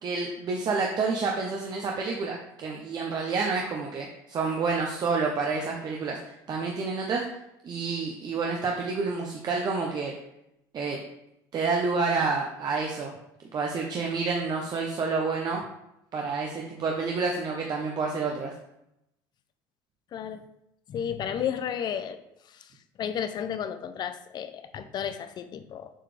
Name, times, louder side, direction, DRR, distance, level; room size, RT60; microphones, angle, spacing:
voice 1, 0.0-6.2 6.5-7.2 7.6-10.1 10.7-11.0 11.5-13.1 13.5-15.6 16.1-18.5, right 4 dB, 45° right, 0 dB, 1.0 m, -29 dB
voice 2, 20.1-20.5 20.9-22.2 22.5-22.7 23.0-25.9, left 8 dB, 45° left, 10 dB, 0.7 m, -33 dB
7.4 x 4.9 x 3.4 m, 0.83 s
supercardioid pair, 85°, 10 cm